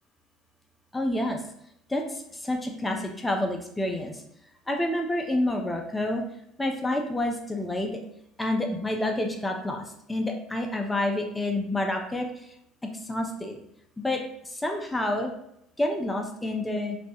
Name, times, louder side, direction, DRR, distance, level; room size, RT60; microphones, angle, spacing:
voice 1, 0.9-1.4 1.9-4.1 4.7-6.2 6.6-7.9 8.4-12.4 13.1-13.6 14.0-15.3 15.8-17.0, left 1 dB, 10° left, 2 dB, 0.4 m, -28 dB
2.2 x 2.0 x 2.8 m, 0.75 s
hypercardioid pair, 65°, 0 cm